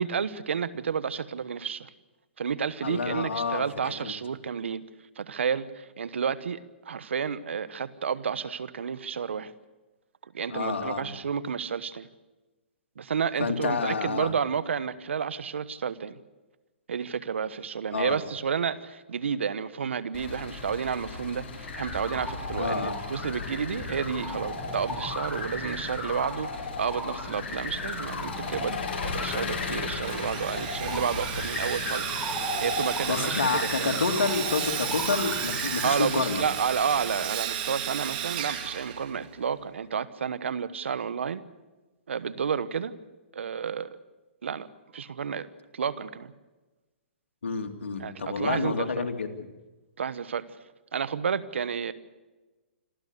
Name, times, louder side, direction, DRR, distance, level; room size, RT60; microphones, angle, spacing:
voice 1, 0.0-1.9 2.4-4.8 5.2-9.5 10.3-12.1 13.0-16.2 16.9-32.1 32.6-34.0 35.8-41.4 42.1-42.9 43.3-44.0 44.4-44.7 44.9-45.5 45.7-46.3 48.0-49.1 50.0-50.4 50.9-51.9, right 6 dB, 80° right, 15 dB, 1.2 m, -31 dB
voice 2, 2.8-4.1 10.5-11.1 13.4-14.3 17.9-18.2 22.6-23.0 33.1-36.4 47.4-49.3, left 5 dB, 80° left, 5 dB, 2.6 m, -29 dB
Engine, 20.1-37.3, left 5 dB, 50° left, 5.7 m, -39 dB
sound 1, 21.7-36.0, left 2 dB, 10° left, 7.2 m, -36 dB
Sawing, 30.0-39.5, right 10 dB, 45° right, 2.8 m, -33 dB
27.0 x 13.0 x 8.2 m, 1.2 s
hypercardioid pair, 140°, 6 cm